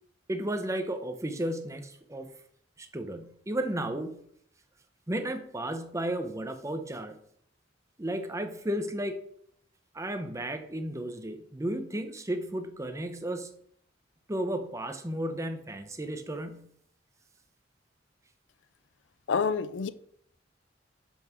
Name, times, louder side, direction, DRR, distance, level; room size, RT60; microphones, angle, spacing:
voice 1, 0.3-2.3 2.8-4.2 5.1-7.2 8.0-9.2 9.9-13.5 14.3-16.7, right 1 dB, 15° right, 0.6 m, -33 dB
voice 2, 19.3-19.9, left 5 dB, 75° left, 0.4 m, -27 dB
5.4 x 4.6 x 5.9 m
head